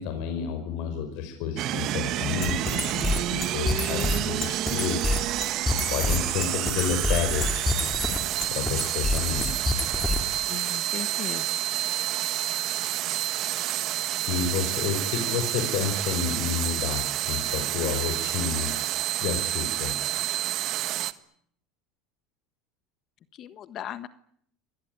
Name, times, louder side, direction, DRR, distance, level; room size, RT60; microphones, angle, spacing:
voice 1, 0.0-5.0 5.9-7.7 8.5-9.5 14.3-20.0, left 7 dB, 65° left, 6 dB, 5.4 m, -30 dB
sound 1, 1.6-21.1, right 14 dB, 50° right, 1.5 m, -29 dB
sound 2, 2.4-10.4, left 2 dB, 10° left, 3.5 m, -28 dB
voice 2, 3.9-4.5 10.3-11.5 23.3-24.1, left 10 dB, 40° left, 13 dB, 1.4 m, -38 dB
26.5 x 20.5 x 9.6 m, 0.67 s
supercardioid pair, 130°, 0 cm